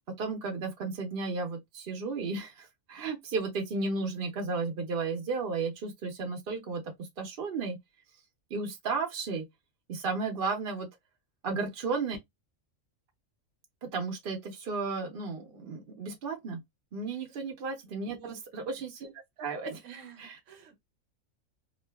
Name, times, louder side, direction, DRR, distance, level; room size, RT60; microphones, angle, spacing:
voice 1, 0.2-7.8 8.5-9.4 9.9-10.9 11.4-12.2 13.8-16.6 16.9-19.1 19.4-19.8 20.2-20.4, right 4 dB, 55° right, 0.7 m, -34 dB
voice 2, 18.0-18.4 19.8-20.8, right 7 dB, 70° right, 1.0 m, -48 dB
2.4 x 2.3 x 2.2 m
omnidirectional pair, 1.4 m